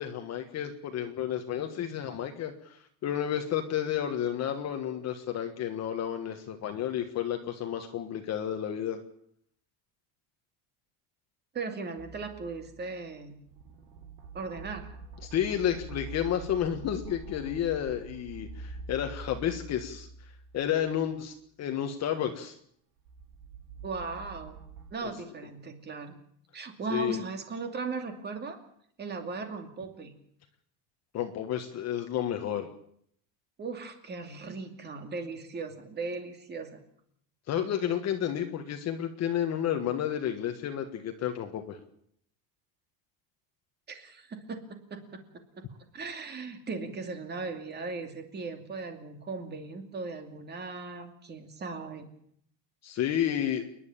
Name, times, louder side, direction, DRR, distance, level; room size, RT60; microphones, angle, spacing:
voice 1, 0.0-9.0 15.2-20.1 20.5-22.6 26.9-27.2 31.1-32.7 37.5-41.8 52.8-53.6, left 10 dB, 35° left, 5 dB, 1.5 m, -31 dB
voice 2, 11.5-13.4 14.3-14.9 23.8-24.6 24.9-26.2 26.5-28.6 29.0-30.1 33.6-36.8 43.9-45.6 45.9-52.1, right 4 dB, 25° right, 6 dB, 2.6 m, -38 dB
sound 1, 12.0-13.1 13.5-21.0 23.0-24.9, right 3 dB, 70° right, 4.3 m, -45 dB
28.5 x 11.0 x 9.0 m, 0.68 s
cardioid pair, 175°, 44 cm